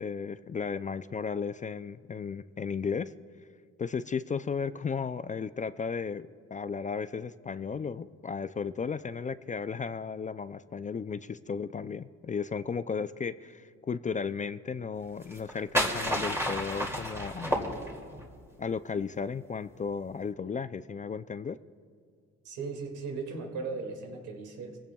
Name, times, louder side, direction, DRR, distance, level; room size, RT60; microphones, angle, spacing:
voice 1, 0.0-3.1 3.8-17.7 18.6-21.6, left 5 dB, 25° left, 13 dB, 0.4 m, -34 dB
sound 1, 15.2-18.3, equal, 10° right, 2.4 m, -31 dB
voice 2, 22.4-24.8, right 4 dB, 90° right, 3 dB, 2.2 m, -37 dB
22.0 x 16.0 x 2.3 m, 2.2 s
cardioid pair, 90°, 30 cm